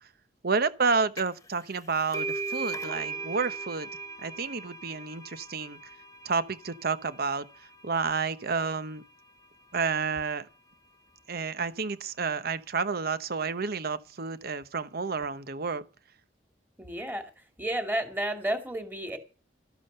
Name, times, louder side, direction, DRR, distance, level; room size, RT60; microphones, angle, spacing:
voice 1, 0.4-3.9 4.2-5.8 6.2-7.5 7.8-9.0 9.7-10.5 11.3-15.8, right 4 dB, 55° right, 1.0 m, -30 dB
sound 1, 1.2-1.5 1.7-9.1, right 4 dB, 20° left, 1.2 m, -39 dB
voice 2, 16.8-17.2 17.6-19.2, right 1 dB, 10° right, 2.4 m, -31 dB
13.0 x 12.5 x 5.6 m
head